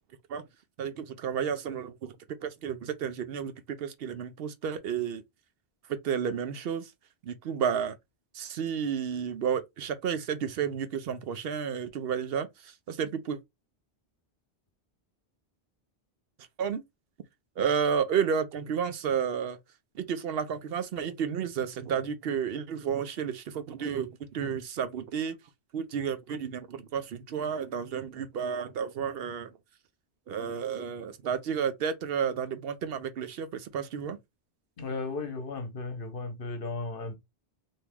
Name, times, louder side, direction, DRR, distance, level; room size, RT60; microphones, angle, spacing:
voice 1, 0.8-2.2 2.4-3.5 3.8-5.2 6.0-6.9 7.2-7.9 8.3-13.4 16.6-16.8 17.6-19.6 19.9-25.3 25.7-29.5 30.3-34.2, right 7 dB, 70° right, 0.8 m, -31 dB
voice 2, 34.8-37.2, left 3 dB, 60° left, 1.0 m, -35 dB
2.9 x 2.7 x 3.4 m
omnidirectional pair, 1.1 m